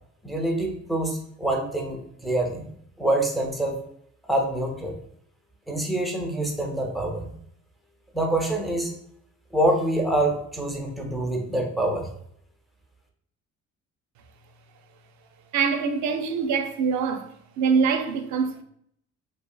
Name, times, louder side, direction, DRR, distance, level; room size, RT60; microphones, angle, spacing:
voice 1, 0.2-2.7 3.0-3.8 4.3-5.0 5.7-7.3 8.1-8.9 9.5-12.1, right 1 dB, ahead, 0.5 m, -26 dB
voice 2, 15.5-17.3 17.6-18.6, right 5 dB, 70° right, 0.5 m, -24 dB
2.7 x 2.4 x 2.2 m
cardioid pair, 90°, 30 cm